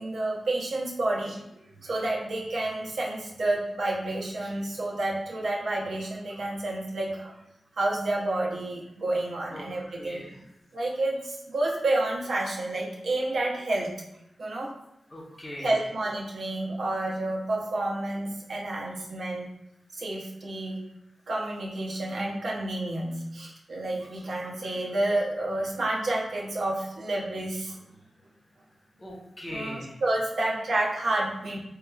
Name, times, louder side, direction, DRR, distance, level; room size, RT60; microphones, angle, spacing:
voice 1, 0.0-1.4 1.8-7.3 7.7-10.2 10.7-13.9 14.4-14.8 15.6-19.5 20.0-20.8 21.3-27.8 29.5-31.6, right 2 dB, 75° right, -2 dB, 0.7 m, -29 dB
voice 2, 10.0-10.3 15.1-15.7 29.0-29.9, equal, 20° left, -3 dB, 0.7 m, -39 dB
3.7 x 2.9 x 2.3 m, 0.84 s
wide cardioid pair, 165°, 0 cm